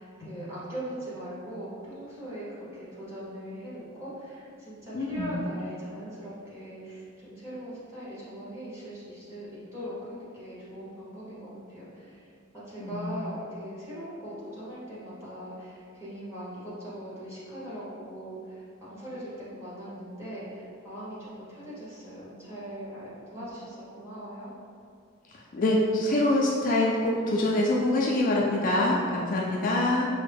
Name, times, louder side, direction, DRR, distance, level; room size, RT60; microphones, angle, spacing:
voice 1, 0.0-12.3 12.5-24.5, equal, 15° right, -10 dB, 1.1 m, -40 dB
voice 2, 4.9-5.3 12.8-13.1 25.5-30.1, left 1 dB, 40° left, -3 dB, 0.3 m, -25 dB
4.3 x 2.1 x 3.4 m, 2.3 s
head